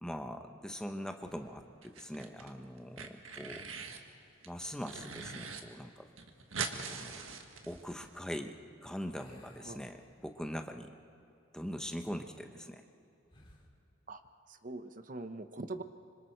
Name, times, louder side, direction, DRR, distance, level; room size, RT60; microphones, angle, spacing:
voice 1, 0.0-3.7 4.5-6.1 6.9-7.2 7.7-10.9 11.5-12.8, equal, 5° left, 5 dB, 0.9 m, -42 dB
sound 1, 1.2-1.8 4.8-5.9 9.1-10.6 11.0-11.2 13.3-13.8, left 1 dB, 25° left, 2.3 m, -58 dB
sound 2, 1.8-2.5 2.8-4.0 4.4-5.6 5.9-6.0 6.2-8.1, right 5 dB, 85° right, 1.6 m, -42 dB
voice 2, 14.5-15.8, right 2 dB, 40° right, 9 dB, 0.8 m, -43 dB
26.0 x 25.5 x 4.6 m, 2.8 s
head